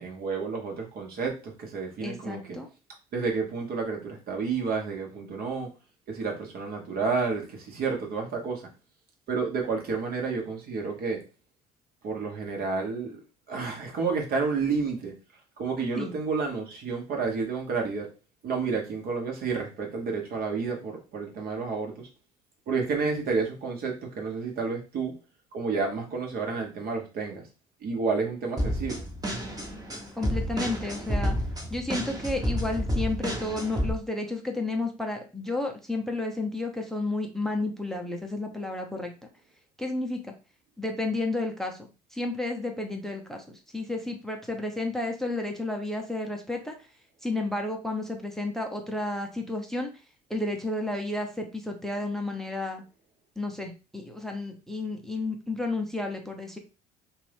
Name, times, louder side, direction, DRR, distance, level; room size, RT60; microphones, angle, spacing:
voice 1, 0.0-2.6 3.1-5.7 6.1-8.7 9.3-11.2 12.0-13.2 13.5-15.1 15.6-18.1 18.4-22.1 22.7-25.2 25.5-27.4 27.8-29.1, right 4 dB, 55° right, 1 dB, 1.1 m, -30 dB
voice 2, 2.0-2.7 16.0-16.2 30.2-31.4 31.7-39.1 39.8-40.3 40.8-46.7 47.2-49.9 50.3-52.8 53.4-56.6, left 2 dB, ahead, 3 dB, 0.7 m, -32 dB
sound 1, 28.6-33.9, equal, 20° right, 1.1 m, -30 dB
2.6 x 2.5 x 3.4 m, 0.31 s
hypercardioid pair, 60°, 19 cm